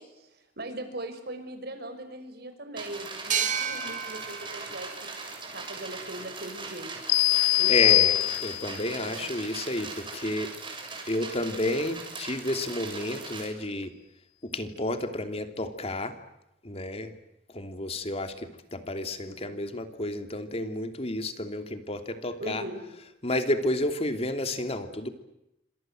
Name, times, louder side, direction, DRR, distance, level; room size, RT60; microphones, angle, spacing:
voice 1, 0.0-5.2 5.5-6.9 7.6-8.2 9.0-9.3 19.3-19.6 22.4-22.8, right 1 dB, 60° right, 8 dB, 5.6 m, -40 dB
sound 1, 2.8-13.5, right 4 dB, 30° right, 7.0 m, -40 dB
sound 2, 3.3-6.7, right 7 dB, 45° right, 2.3 m, -34 dB
sound 3, 7.1-8.8, left 18 dB, 85° left, 3.6 m, -22 dB
voice 2, 7.7-10.5 11.1-13.9 14.4-16.1 16.6-17.1 17.5-22.6 22.9-25.1, left 1 dB, 35° left, 7 dB, 2.9 m, -31 dB
28.5 x 26.0 x 7.8 m, 0.86 s
head